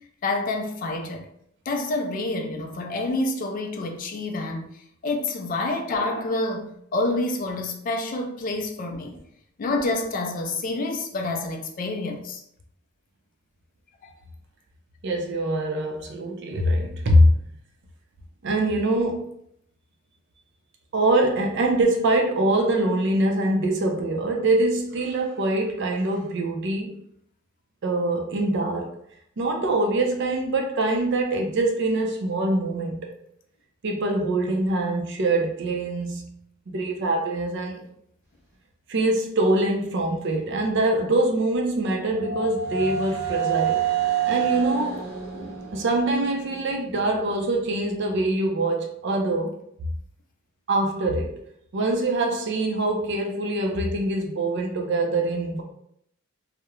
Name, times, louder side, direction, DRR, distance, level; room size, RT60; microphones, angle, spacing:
voice 1, 0.2-1.3 1.7-4.7 5.0-9.2 9.6-12.4 14.0-14.1, left 2 dB, 40° left, 0.3 m, -28 dB
voice 2, 15.0-17.3 18.4-19.4 20.9-27.0 27.8-28.9 29.4-33.1 33.8-36.3 36.7-37.8 38.9-43.8 44.3-45.0 45.7-49.6 50.7-51.3 51.7-55.6, right 2 dB, 55° right, 0.4 m, -24 dB
sound 1, 41.3-47.2, right 8 dB, 15° right, 0.9 m, -28 dB
2.3 x 2.0 x 2.9 m
head